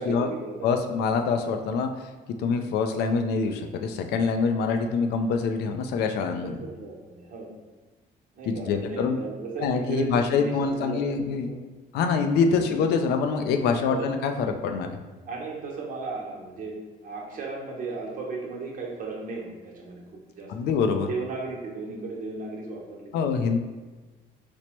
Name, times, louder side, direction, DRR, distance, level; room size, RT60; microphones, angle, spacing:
voice 1, 0.0-0.7 6.3-7.5 8.4-11.2 11.5-11.6 13.9-14.0 15.3-16.7 17.0-20.0 20.3-20.5 21.1-23.2, right 4 dB, 55° right, -2 dB, 0.9 m, -35 dB
voice 2, 0.6-1.9 2.4-6.6 8.5-9.2 9.6-11.5 11.9-14.9 20.5-21.1 23.1-23.6, left 5 dB, 75° left, 5 dB, 0.4 m, -25 dB
4.3 x 2.1 x 2.9 m, 1.3 s
cardioid pair, 110°, 17 cm